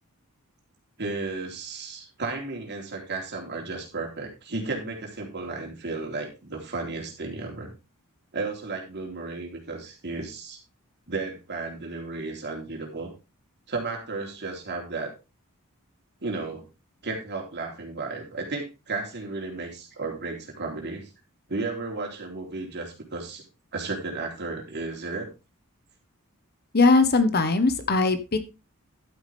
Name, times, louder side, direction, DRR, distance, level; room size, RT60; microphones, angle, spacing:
voice 1, 1.0-7.7 8.3-10.6 11.1-13.1 13.7-15.1 16.2-16.7 17.0-21.1 21.5-23.4 23.7-25.3, right 3 dB, 50° right, 1 dB, 3.7 m, -33 dB
voice 2, 26.7-28.4, left 3 dB, 45° left, 10 dB, 1.3 m, -20 dB
12.0 x 8.8 x 3.6 m, 0.28 s
head